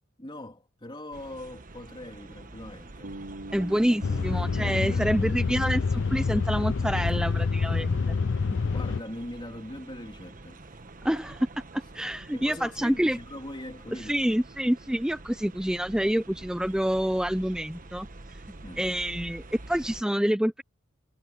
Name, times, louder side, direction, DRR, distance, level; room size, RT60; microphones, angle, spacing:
voice 1, 0.2-3.1 3.9-4.2 4.6-5.1 8.7-10.8 12.0-14.2 18.6-18.9, left 1 dB, 25° left, 3.2 m, -41 dB
sound 1, 1.1-20.0, right 2 dB, 45° right, 1.2 m, -47 dB
Bass guitar, 3.0-7.1, right 1 dB, 70° right, 2.8 m, -45 dB
voice 2, 3.5-8.2 11.0-11.5 11.7-13.2 13.9-18.1 18.8-20.6, equal, 5° right, 0.6 m, -27 dB
sound 2, 4.0-9.0, left 4 dB, 65° left, 0.5 m, -27 dB
head